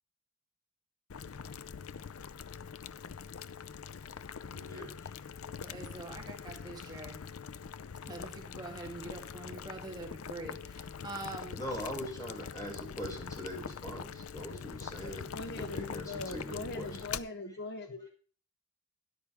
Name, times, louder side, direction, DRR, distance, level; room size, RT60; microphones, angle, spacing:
Boiling, 1.1-17.2, left 6 dB, 70° left, 0.5 m, -43 dB
voice 1, 4.4-5.1 11.5-17.2, equal, 15° left, -1 dB, 5.6 m, -42 dB
voice 2, 5.6-7.2 8.1-11.6 12.4-12.9, right 2 dB, 20° right, 1 dB, 1.9 m, -44 dB
voice 3, 14.9-18.1, left 2 dB, 55° left, 7 dB, 1.1 m, -41 dB
13.5 x 10.5 x 3.5 m, 0.41 s
head